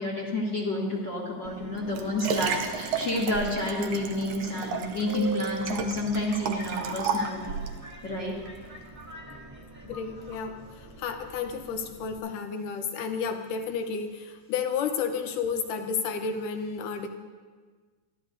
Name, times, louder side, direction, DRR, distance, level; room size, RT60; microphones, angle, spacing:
voice 1, 0.0-7.6 8.0-8.4, left 1 dB, 40° left, -3 dB, 2.0 m, -30 dB
Subway metro underground, 1.4-12.2, right 2 dB, 10° right, 1.0 m, -42 dB
Liquid, 1.5-7.8 8.5-8.6, right 6 dB, 80° right, 1.5 m, -33 dB
voice 2, 9.9-17.1, left 6 dB, 75° left, 7 dB, 2.4 m, -32 dB
22.5 x 14.0 x 2.7 m, 1.5 s
omnidirectional pair, 3.9 m